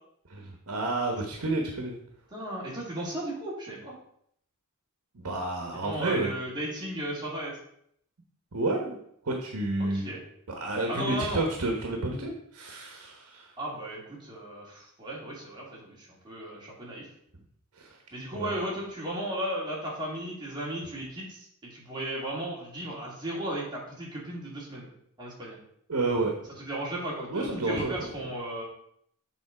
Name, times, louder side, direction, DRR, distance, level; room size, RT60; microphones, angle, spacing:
voice 1, 0.3-2.0 5.1-6.3 8.5-9.0 9.2-10.1 10.6-13.5 17.8-18.0 18.3-18.5 25.9-26.3 27.3-28.1, right 2 dB, 75° right, 2 dB, 1.1 m, -30 dB
voice 2, 2.3-4.0 5.8-7.5 9.8-10.2 10.9-11.4 13.6-17.1 18.1-24.9 25.2-25.6 26.7-28.6, right 1 dB, 20° right, -5 dB, 2.3 m, -35 dB
6.9 x 3.9 x 4.9 m, 0.68 s
head